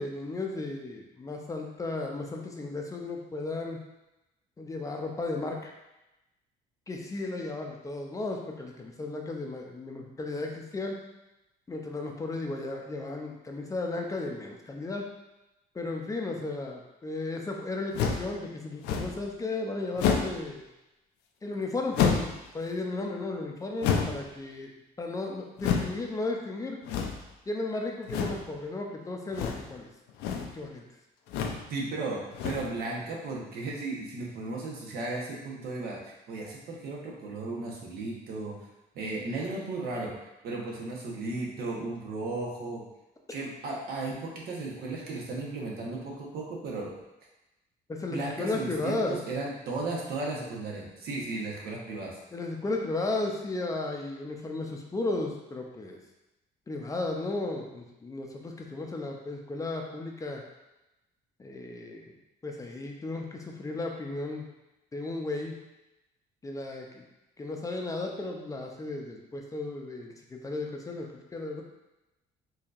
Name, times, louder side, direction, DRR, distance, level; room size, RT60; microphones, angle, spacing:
voice 1, 0.0-3.8 4.6-5.7 6.9-11.0 11.7-15.1 15.7-20.6 21.4-26.8 27.5-29.9 30.4-30.8 47.9-49.2 52.3-56.0 56.7-60.4 61.4-62.1 62.4-64.5 64.9-65.5 66.4-67.0 67.4-71.1 71.3-71.6, left 2 dB, 20° left, 1 dB, 0.5 m, -34 dB
sound 1, 17.9-18.3 18.8-19.2 20.0-20.4 21.9-22.4 23.8-24.3 25.6-26.0 26.8-27.3 28.1-28.5 29.3-29.7 30.1-30.5 31.3-31.7 32.3-32.8, left 6 dB, 85° left, 0.5 m, -28 dB
voice 2, 31.7-36.0 36.3-38.6 38.9-40.1 40.4-42.8 43.3-47.0 48.1-52.2, right 3 dB, 65° right, -2 dB, 1.0 m, -35 dB
4.3 x 2.8 x 2.5 m, 0.96 s
cardioid pair, 110°, 17 cm